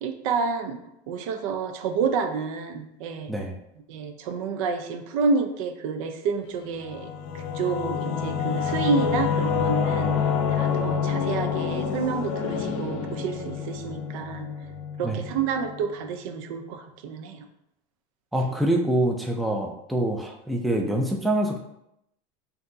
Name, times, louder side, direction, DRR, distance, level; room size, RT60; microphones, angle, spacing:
voice 1, 0.0-0.8 1.1-3.3 3.9-7.1 7.3-14.5 15.0-17.5 18.4-18.5, right 5 dB, 75° right, 7 dB, 0.6 m, -29 dB
Singing / Musical instrument, 6.7-15.8, left 7 dB, 55° left, 0.6 m, -27 dB
voice 2, 18.3-21.6, right 1 dB, ahead, 1 dB, 0.4 m, -25 dB
5.7 x 2.7 x 2.6 m, 0.81 s
supercardioid pair, 145°, 18 cm